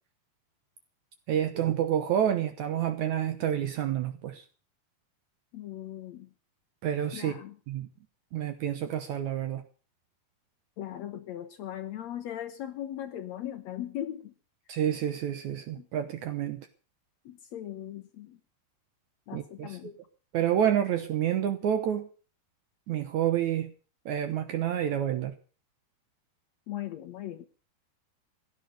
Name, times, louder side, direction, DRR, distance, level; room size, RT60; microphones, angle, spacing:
voice 1, 1.3-4.4 6.8-7.4 7.7-7.9 8.3-9.6 14.7-16.7 19.3-19.8 20.3-22.1 22.9-23.7 24.1-25.3, right 10 dB, 70° right, 1.9 m, -28 dB
voice 2, 5.5-6.3 7.1-7.6 10.8-14.3 15.8-15.9 17.2-18.4 19.3-20.0 26.7-27.5, left 11 dB, 75° left, 1.6 m, -39 dB
16.5 x 11.0 x 6.5 m
omnidirectional pair, 4.4 m